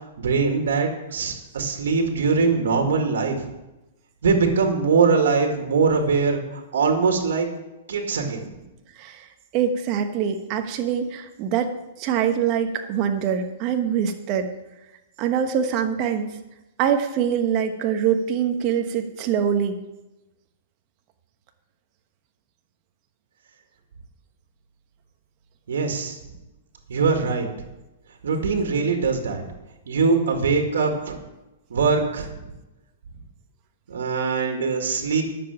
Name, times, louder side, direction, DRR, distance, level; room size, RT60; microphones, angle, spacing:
voice 1, 0.2-3.4 4.2-7.5 7.9-8.5 25.7-26.2 26.9-27.5 28.2-29.4 29.9-31.2 31.7-32.3 33.9-35.2, right 4 dB, 85° right, 4 dB, 1.9 m, -22 dB
voice 2, 9.5-11.7 12.0-14.5 15.2-16.4 16.8-19.8, right 8 dB, 35° right, 6 dB, 1.2 m, -24 dB
10.0 x 7.1 x 7.2 m, 1.0 s
hypercardioid pair, 155°, 0 cm